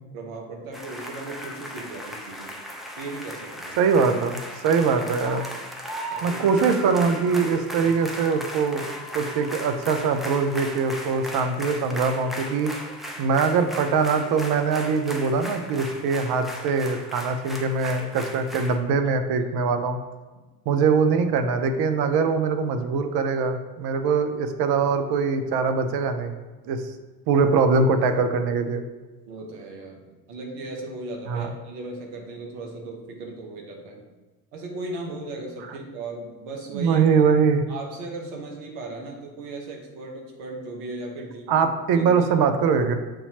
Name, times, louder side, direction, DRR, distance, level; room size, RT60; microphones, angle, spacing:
voice 1, 0.1-2.6 3.0-3.8 6.1-6.6 19.4-19.5 20.3-20.4 29.3-34.0 34.5-37.1 37.7-41.6 41.9-42.1, right 2 dB, 70° right, 1 dB, 1.1 m, -37 dB
sound 1, 0.7-18.8, equal, ahead, 0.6 m, -37 dB
voice 2, 3.8-5.4 6.2-8.8 9.1-12.7 13.2-20.0 20.7-26.3 26.7-26.8 27.3-28.8 31.3-31.5 36.7-37.6 41.5-42.9, right 5 dB, 50° right, 7 dB, 0.6 m, -22 dB
6.7 x 2.8 x 2.8 m, 1.2 s
hypercardioid pair, 55°, 47 cm